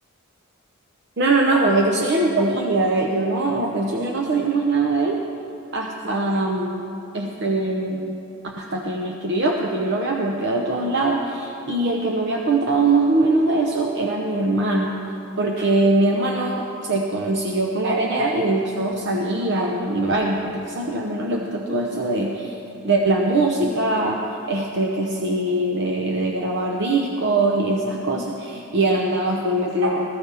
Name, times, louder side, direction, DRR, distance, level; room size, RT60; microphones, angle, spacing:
voice 1, 1.2-5.2 5.7-6.8 7.1-8.2 8.4-15.0 15.4-22.6 22.8-30.1, right 2 dB, 55° right, 0 dB, 0.9 m, -22 dB
20.0 x 14.0 x 3.5 m, 2.9 s
head